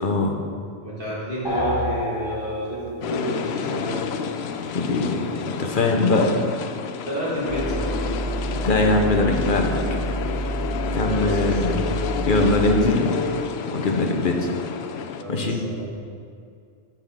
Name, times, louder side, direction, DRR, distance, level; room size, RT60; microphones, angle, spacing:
voice 1, 0.0-0.4 4.7-6.3 8.6-9.7 10.9-11.8 12.3-13.2 13.7-14.5 15.3-15.6, left 2 dB, 55° left, 3 dB, 1.1 m, -21 dB
voice 2, 0.8-4.0 7.0-8.0 11.1-12.0 15.2-15.9, right 1 dB, 55° right, -7 dB, 2.3 m, -30 dB
sound 1, 1.4-3.0, left 2 dB, 20° left, 1.4 m, -27 dB
sound 2, 3.0-15.2, left 6 dB, 80° left, 0.8 m, -29 dB
sound 3, 7.5-12.9, right 3 dB, 40° right, 0.4 m, -29 dB
12.5 x 5.9 x 3.7 m, 2.3 s
omnidirectional pair, 1.1 m